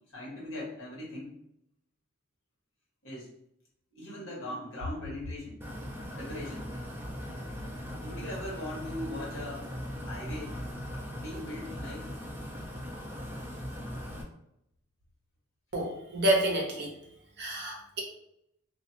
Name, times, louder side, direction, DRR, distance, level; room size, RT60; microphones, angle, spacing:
voice 1, 0.1-1.3 3.0-3.3 3.9-5.6 6.1-6.7 8.0-9.7 10.0-10.6 11.2-12.2, left 1 dB, 65° left, -5 dB, 1.2 m, -39 dB
sound 1, 5.6-14.2, equal, 10° right, 0.3 m, -39 dB
voice 2, 15.7-17.0 17.4-18.0, right 1 dB, 50° right, 0 dB, 0.6 m, -29 dB
2.5 x 2.1 x 2.8 m, 0.79 s
head